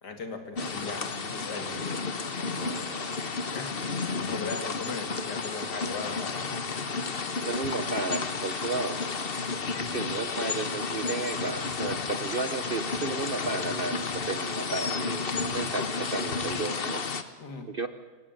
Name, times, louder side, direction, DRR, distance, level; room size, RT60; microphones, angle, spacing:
voice 1, 0.0-1.9 2.7-2.8 3.5-3.8 4.2-6.4 17.4-17.7, left 4 dB, 75° left, 6 dB, 3.0 m, -38 dB
sound 1, 0.6-17.2, left 4 dB, 35° left, 1.3 m, -32 dB
voice 2, 2.6-3.1 7.4-9.0 9.9-17.0 17.7-17.9, right 3 dB, 40° right, 10 dB, 0.9 m, -33 dB
24.0 x 18.5 x 9.1 m, 1.3 s
omnidirectional pair, 1.8 m